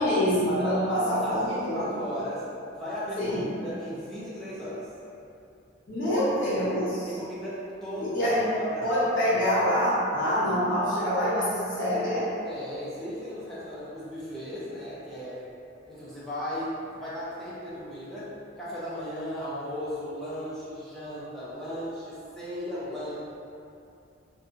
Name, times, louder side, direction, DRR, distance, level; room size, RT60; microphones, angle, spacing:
voice 1, 0.0-1.9 3.2-3.4 5.9-7.2 8.0-8.5 8.8-12.3, equal, 60° left, -10 dB, 0.7 m, -25 dB
voice 2, 0.6-2.4 2.7-3.4 3.6-4.9 7.1-8.9 12.4-15.4 15.9-18.3 18.6-23.2, equal, ahead, -11 dB, 0.4 m, -36 dB
2.7 x 2.2 x 2.4 m, 2.6 s
head